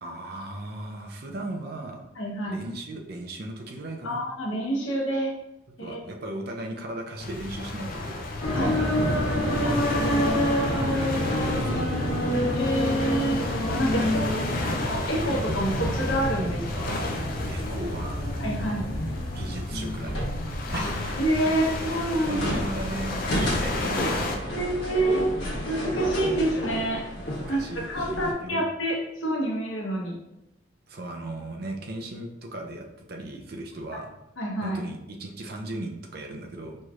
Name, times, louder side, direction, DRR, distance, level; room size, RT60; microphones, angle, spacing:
voice 1, 0.0-2.0 2.5-4.3 5.8-9.4 11.2-12.3 13.9-14.7 17.5-18.3 19.3-20.3 20.7-21.1 21.4-21.6 22.2-24.6 27.2-28.6 30.9-34.1 34.6-36.8, right 2 dB, 50° right, 2 dB, 0.5 m, -37 dB
voice 2, 2.2-2.6 4.0-5.3 5.8-6.0 8.5-8.7 9.6-11.0 12.5-13.4 13.7-14.4 14.7-17.0 18.4-18.9 20.7-20.9 21.2-22.4 24.5-27.0 27.5-30.2 33.9-34.0 34.4-34.8, right 1 dB, 85° left, -1 dB, 0.9 m, -28 dB
sound 1, 7.2-24.4, left 2 dB, 45° left, 0.4 m, -34 dB
sound 2, 8.4-28.3, equal, 65° left, 1.2 m, -28 dB
4.4 x 3.1 x 2.4 m, 0.88 s
head